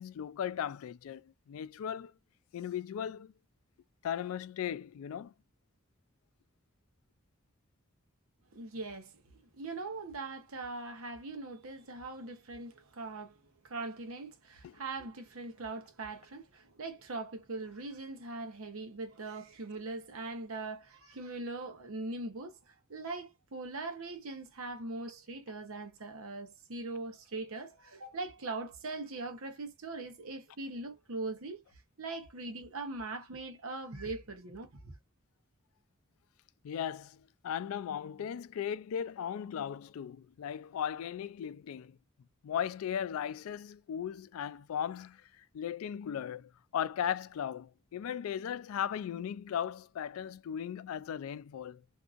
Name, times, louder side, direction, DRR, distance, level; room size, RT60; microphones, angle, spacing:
voice 1, 0.0-2.1 2.5-3.3 4.0-5.3 14.6-14.7 36.6-42.0 42.4-51.8, left 9 dB, 85° left, 0.3 m, -37 dB
voice 2, 8.5-9.2 9.5-13.4 13.6-31.6 32.0-34.9, right 3 dB, 90° right, 0.9 m, -41 dB
2.7 x 2.4 x 2.4 m
head